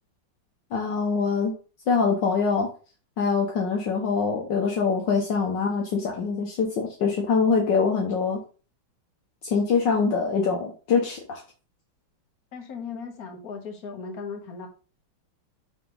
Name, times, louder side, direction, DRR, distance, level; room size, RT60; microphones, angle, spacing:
voice 1, 0.7-1.5 1.9-2.7 3.2-8.4 9.4-11.4, left 5 dB, 65° left, 0 dB, 1.6 m, -24 dB
voice 2, 12.5-14.7, left 5 dB, 50° left, 3 dB, 1.8 m, -37 dB
5.8 x 3.5 x 5.4 m, 0.36 s
omnidirectional pair, 2.2 m